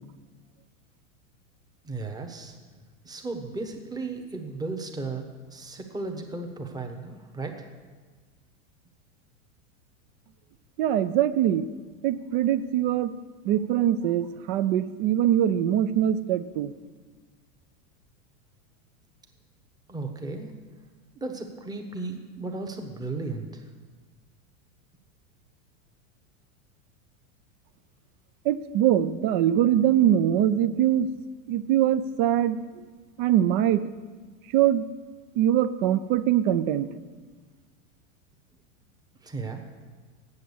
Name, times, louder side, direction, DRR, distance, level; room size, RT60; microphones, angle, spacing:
voice 1, 1.8-2.6 3.0-7.7 19.9-20.5 21.1-23.7 39.2-39.6, right 3 dB, 10° right, 4 dB, 1.0 m, -35 dB
voice 2, 10.8-11.7 12.0-13.1 13.5-16.7 28.5-31.1 31.5-32.6 33.2-33.9 34.5-34.8 35.4-36.9, right 11 dB, 40° right, 14 dB, 0.4 m, -23 dB
8.0 x 7.4 x 7.0 m, 1.4 s
hypercardioid pair, 120°, 42 cm